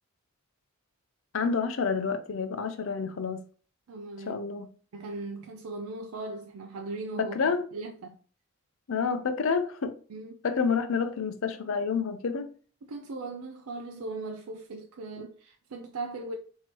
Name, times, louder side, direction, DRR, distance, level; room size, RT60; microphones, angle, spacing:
voice 1, 1.3-3.4 4.3-4.7 7.2-7.6 8.9-10.0 10.4-12.5, left 5 dB, 65° left, 0.5 m, -28 dB
voice 2, 3.9-4.4 4.9-7.4 7.7-8.2 10.1-10.3 12.8-16.4, right 2 dB, 85° right, 0.5 m, -38 dB
4.5 x 2.8 x 2.9 m
head